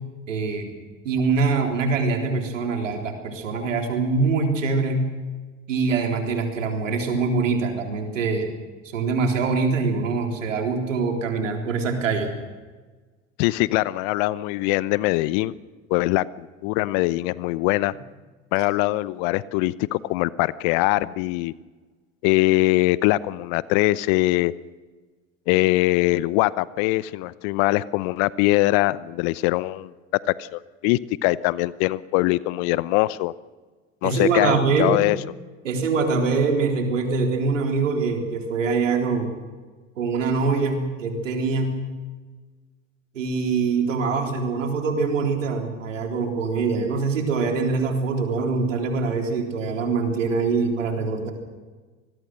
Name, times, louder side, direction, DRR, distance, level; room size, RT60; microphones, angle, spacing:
voice 1, 0.3-0.8 1.0-5.1 5.7-8.5 8.9-12.3 34.0-35.0 35.6-39.3 40.0-41.8 43.1-51.3, right 4 dB, 80° right, 3 dB, 3.8 m, -24 dB
voice 2, 13.4-15.6 15.9-17.9 18.5-21.5 22.2-24.5 25.5-29.9 30.3-33.3 34.0-35.2, left 19 dB, 60° left, 19 dB, 0.9 m, -22 dB
26.0 x 20.5 x 6.4 m, 1.4 s
figure-of-eight pair, 70°, 38 cm